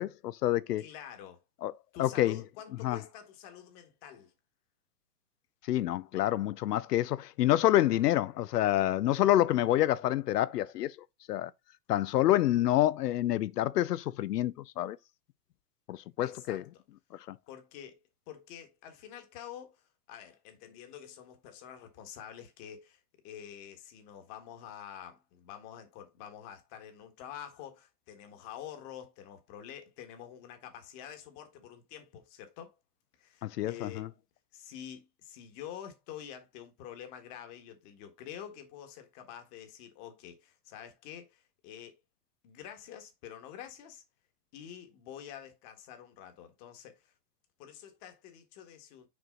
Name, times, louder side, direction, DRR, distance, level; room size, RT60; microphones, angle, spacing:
voice 1, 0.0-0.8 1.6-1.7 2.0-2.4 2.8-3.0 5.7-10.9 11.3-11.5 11.9-15.0 15.9-16.6 17.3-17.4 33.4-34.1, left 13 dB, 85° left, 0.7 m, -27 dB
voice 2, 0.8-1.4 1.9-4.3 6.1-6.3 16.2-16.8 17.5-18.0 18.3-32.8 33.2-34.1 34.5-42.0 42.4-44.0 44.5-47.1 47.6-49.1, left 9 dB, 35° left, 1.7 m, -47 dB
6.1 x 4.5 x 3.7 m
hypercardioid pair, 145°, 46 cm